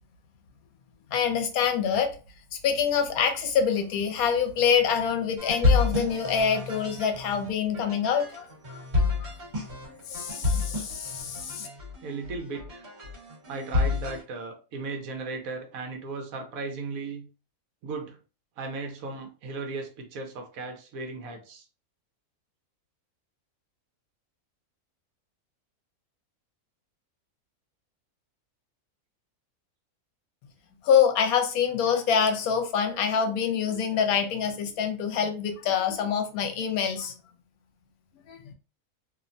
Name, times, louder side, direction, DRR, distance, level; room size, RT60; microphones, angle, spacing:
voice 1, 1.1-2.1 2.6-8.8 9.2-9.3 10.1-11.7 30.8-37.1 38.3-38.5, left 7 dB, 75° left, 6 dB, 1.0 m, -26 dB
sound 1, 5.4-14.2, left 4 dB, 45° right, 1.4 m, -29 dB
voice 2, 12.0-12.8 13.5-17.3 17.8-18.2 18.6-21.6, right 3 dB, 75° right, 4 dB, 1.1 m, -36 dB
2.8 x 2.1 x 2.5 m, 0.34 s
omnidirectional pair, 1.6 m